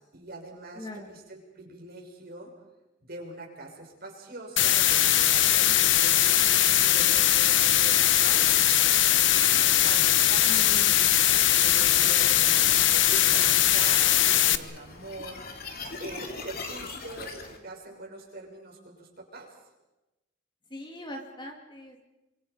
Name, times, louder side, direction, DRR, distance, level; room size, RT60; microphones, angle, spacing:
voice 1, 0.0-2.5 3.0-6.2 6.8-8.7 9.4-10.8 11.6-12.6 13.1-15.4 16.0-19.5, right 2 dB, 55° right, 1 dB, 6.1 m, -43 dB
voice 2, 0.7-1.1 10.5-11.1 20.7-22.0, left 1 dB, 25° left, 2 dB, 3.0 m, -41 dB
sound 1, 4.6-14.6, left 12 dB, 70° left, 1.0 m, -21 dB
sound 2, 9.5-17.6, left 3 dB, 50° left, 3.2 m, -43 dB
28.5 x 25.5 x 5.2 m, 1.0 s
head